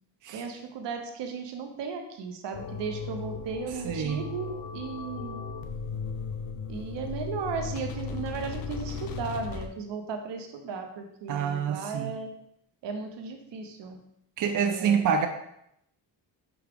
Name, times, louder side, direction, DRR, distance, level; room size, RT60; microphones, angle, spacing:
voice 1, 0.3-5.4 6.7-12.3 12.8-14.0 14.7-15.0, right 5 dB, 70° right, 5 dB, 0.8 m, -36 dB
sound 1, 2.5-9.7, left 5 dB, 55° left, 0.6 m, -36 dB
voice 2, 3.7-4.2 11.3-12.2 14.4-15.3, right 7 dB, 45° right, 5 dB, 0.5 m, -27 dB
6.0 x 2.3 x 3.4 m, 0.77 s
cardioid pair, 75°, 44 cm